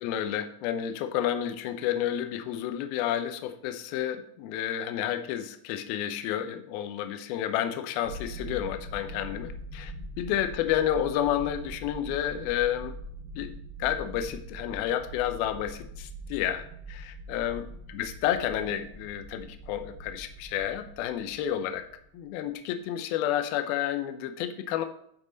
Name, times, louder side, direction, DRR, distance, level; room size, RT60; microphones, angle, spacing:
voice 1, 0.0-12.9 13.4-13.5 13.8-21.8 22.1-24.9, left 11 dB, 85° left, 8 dB, 2.2 m, -30 dB
sound 1, 8.0-22.2, right 1 dB, 70° right, 2.5 m, -42 dB
10.5 x 5.6 x 3.9 m, 0.70 s
omnidirectional pair, 5.1 m